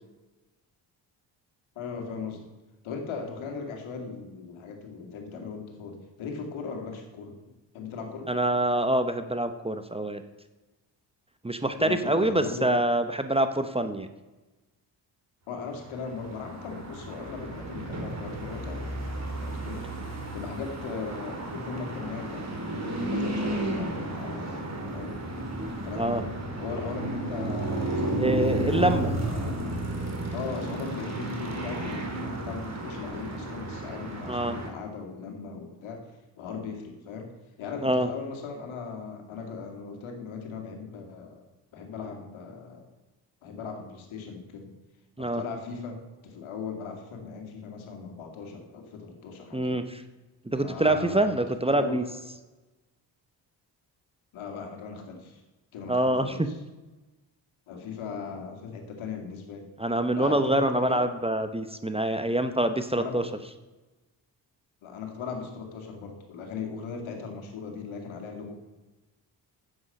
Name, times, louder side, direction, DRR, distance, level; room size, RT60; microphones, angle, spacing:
voice 1, 1.8-2.5 2.8-7.4 7.7-8.3 11.8-12.7 15.5-19.0 19.4-19.9 20.3-24.6 24.9-25.2 25.8-26.3 26.6-29.5 30.3-36.0 36.4-37.3 37.6-41.4 41.7-42.9 43.4-44.7 45.2-49.8 50.6-51.3 51.7-52.0 54.3-55.4 55.7-56.5 57.7-59.7 60.1-61.0 62.9-63.2 64.8-68.6, left 5 dB, 75° left, 3 dB, 2.3 m, -38 dB
voice 2, 8.3-10.2 11.4-14.1 26.0-26.2 28.2-29.1 34.3-34.6 37.8-38.1 45.2-45.4 49.5-50.0 50.4-52.0 55.9-56.5 59.8-63.2, right 1 dB, 10° right, 9 dB, 0.9 m, -25 dB
Street Sounds, 15.9-34.7, right 1 dB, 30° right, 2.8 m, -33 dB
9.7 x 8.2 x 5.4 m, 1.1 s
hypercardioid pair, 50°, 49 cm